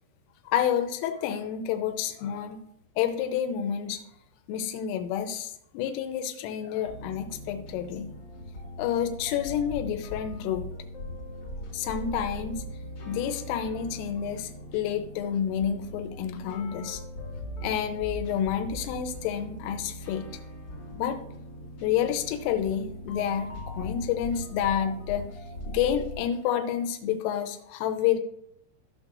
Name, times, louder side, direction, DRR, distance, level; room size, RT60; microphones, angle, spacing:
voice 1, 0.5-2.6 3.0-4.0 4.5-8.1 8.8-10.7 11.7-12.6 13.1-17.0 17.6-20.3 20.9-21.2 21.8-25.3 25.7-28.2, left 9 dB, 85° left, 6 dB, 3.4 m, -29 dB
sound 1, 6.9-26.2, left 1 dB, 50° left, 1.8 m, -40 dB
15.0 x 6.4 x 2.5 m, 0.75 s
omnidirectional pair, 5.8 m